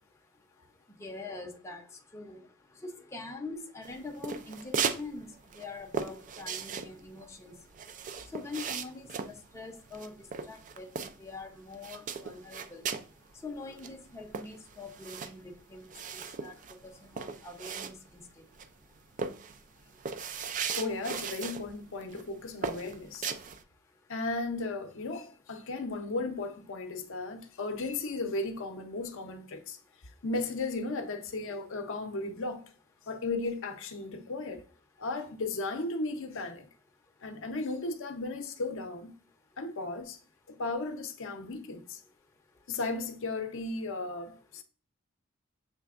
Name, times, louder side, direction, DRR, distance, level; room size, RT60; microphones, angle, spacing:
voice 1, 1.0-1.8 2.1-2.4 2.8-5.3 5.6-7.5 8.3-9.1 9.5-10.1 10.5-10.9 11.2-12.8 13.4-16.5 16.8-18.2, left 3 dB, 15° left, 0.6 m, -43 dB
sound 1, 3.8-5.1 5.3-11.4 11.7-13.1 13.5-13.6 13.8-18.3 18.6-18.8 19.2-21.7 22.0-22.3 22.6-23.6, right 6 dB, 35° right, 0.3 m, -37 dB
voice 2, 20.8-23.3 24.1-29.8 30.2-32.6 33.1-34.6 35.0-36.7 37.2-39.1 39.6-40.2 40.5-42.0 42.7-44.6, left 3 dB, 65° left, 0.6 m, -35 dB
6.7 x 3.3 x 2.4 m
head